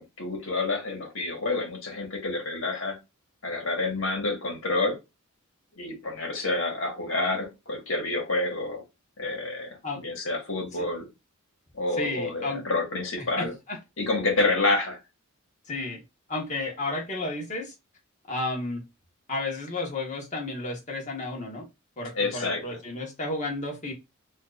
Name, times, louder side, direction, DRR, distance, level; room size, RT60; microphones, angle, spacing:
voice 1, 0.0-3.0 3.4-5.0 5.8-8.8 9.2-11.1 11.7-13.5 14.0-15.0 22.2-22.6, left 2 dB, 65° left, 2 dB, 1.4 m, -28 dB
voice 2, 11.9-12.7 13.2-13.8 15.6-16.0 16.3-17.7 18.3-18.8 19.3-21.7 22.0-23.9, left 2 dB, 35° left, 0 dB, 1.2 m, -32 dB
4.4 x 2.6 x 2.4 m, 0.24 s
head